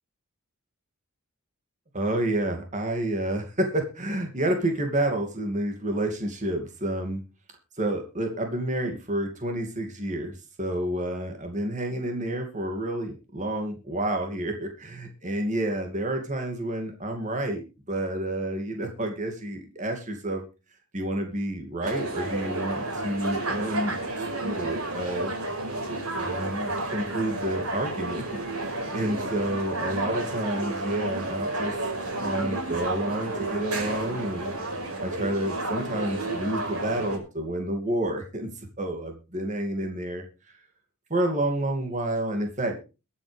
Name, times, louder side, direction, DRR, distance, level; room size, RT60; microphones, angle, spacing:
voice 1, 1.9-7.2 7.8-20.4 20.9-24.0 24.4-25.3 26.2-28.2 28.5-31.8 32.1-34.5 35.0-40.2 41.1-42.8, right 1 dB, 35° right, 4 dB, 2.5 m, -29 dB
sound 1, 21.8-37.2, right 2 dB, 80° right, 5.3 m, -31 dB
22.5 x 8.3 x 3.5 m, 0.30 s
head